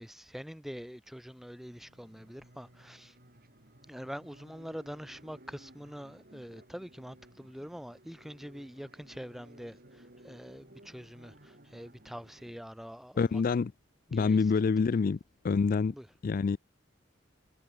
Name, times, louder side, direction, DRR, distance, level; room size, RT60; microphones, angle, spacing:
voice 1, 0.0-3.1 3.9-13.4 14.1-14.4 15.9-16.1, equal, ahead, 1.2 m, -45 dB
sound 1, 1.3-12.6, right 1 dB, 50° right, 6.3 m, -57 dB
voice 2, 13.2-13.7 14.1-15.2 15.4-15.9 16.2-16.6, left 5 dB, 45° left, 0.4 m, -26 dB
head